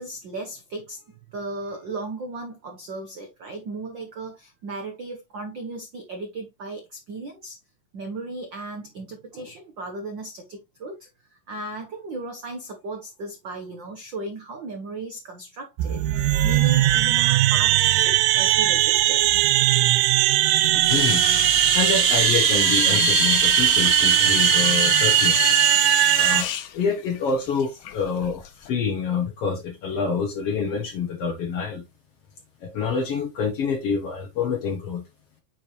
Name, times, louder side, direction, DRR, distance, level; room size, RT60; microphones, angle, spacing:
voice 1, 0.0-7.6 7.9-19.2, right 2 dB, 70° right, 1.1 m, -36 dB
sound 1, 15.8-26.4, right 15 dB, 85° right, 2.3 m, -19 dB
Water tap faucet / Sink (filling or washing), 20.6-28.7, left 11 dB, 85° left, 2.6 m, -28 dB
voice 2, 20.9-25.5 26.1-31.8 32.6-35.0, left 5 dB, 65° left, 1.6 m, -27 dB
8.9 x 4.8 x 3.1 m
omnidirectional pair, 3.8 m